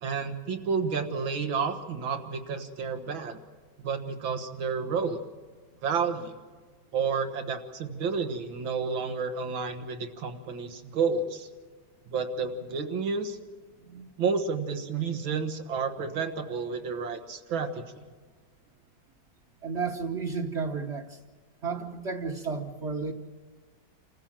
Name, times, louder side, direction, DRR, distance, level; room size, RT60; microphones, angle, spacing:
voice 1, 0.0-3.4 3.8-5.2 5.8-6.3 6.9-11.5 12.1-13.4 14.2-17.8, right 5 dB, 85° right, 7 dB, 2.3 m, -30 dB
voice 2, 13.8-14.1 19.6-21.2 21.6-23.1, right 5 dB, 40° right, -1 dB, 1.3 m, -32 dB
28.0 x 15.0 x 7.5 m, 1.5 s
omnidirectional pair, 2.1 m